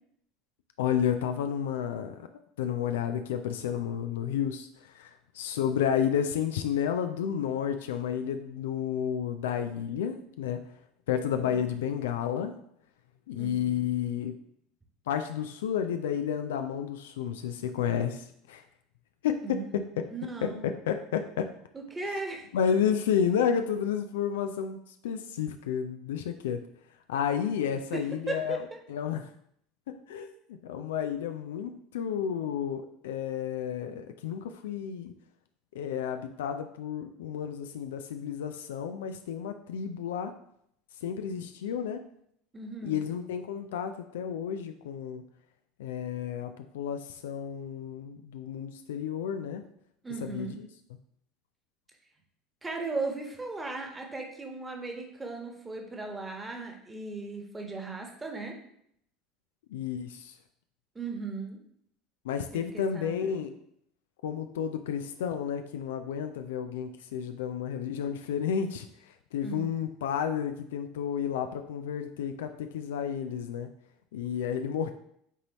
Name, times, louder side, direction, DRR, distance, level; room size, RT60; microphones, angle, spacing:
voice 1, 0.8-2.3 2.6-10.7 11.1-12.5 13.3-14.3 15.1-18.6 19.2-20.1 20.4-21.5 22.0-22.2 22.5-26.6 27.1-28.6 28.9-29.3 30.1-35.1 35.7-40.3 41.0-42.0 42.8-45.2 45.8-49.6 50.2-50.7 59.7-60.3 62.2-63.5 64.2-73.7 74.1-74.9, left 8 dB, 65° left, 7 dB, 0.4 m, -31 dB
voice 2, 13.4-13.9 19.4-19.8 20.1-20.6 21.7-22.5 27.9-28.6 42.5-43.0 50.0-50.6 52.6-58.5 60.9-61.6 62.5-63.5 69.4-69.7, right 3 dB, 15° right, 2 dB, 1.3 m, -37 dB
8.2 x 4.0 x 3.0 m, 0.71 s
figure-of-eight pair, 70°, 0 cm